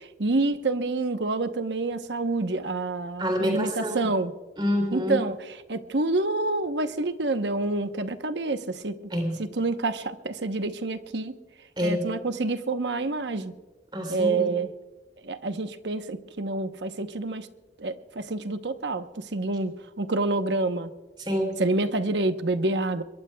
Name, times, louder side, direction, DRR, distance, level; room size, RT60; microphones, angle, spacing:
voice 1, 0.0-4.3 4.9-5.3 5.7-8.9 9.4-11.4 11.8-13.5 14.1-14.7 15.2-17.5 17.8-20.9 21.6-23.0, right 2 dB, 90° right, 9 dB, 1.0 m, -27 dB
voice 2, 3.2-4.2 4.6-5.2 9.1-9.4 11.8-12.1 13.9-14.5 21.2-21.6, equal, 25° right, 4 dB, 3.1 m, -27 dB
23.0 x 22.0 x 2.3 m, 1.3 s
head